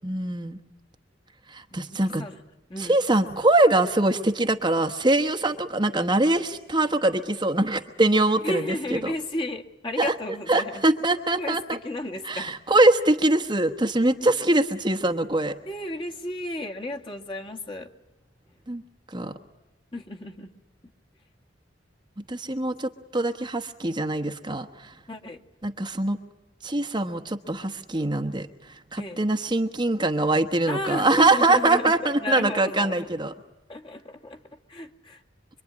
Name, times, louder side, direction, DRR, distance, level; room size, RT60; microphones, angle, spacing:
voice 1, 0.0-0.6 1.5-2.2 2.8-9.1 10.0-10.1 10.5-11.8 12.2-15.5 18.7-18.8 19.1-19.3 22.3-24.9 25.6-26.2 26.6-33.3, right 2 dB, 25° right, 6 dB, 1.1 m, -23 dB
voice 2, 1.7-2.4 2.7-3.0 8.4-10.8 11.4-12.6 14.2-14.3 15.6-17.9 19.9-20.5 25.1-25.4 29.0-29.2 30.7-33.1 33.7-34.4 34.7-35.2, left 1 dB, 30° left, 2 dB, 1.8 m, -33 dB
25.5 x 23.5 x 9.7 m, 0.96 s
head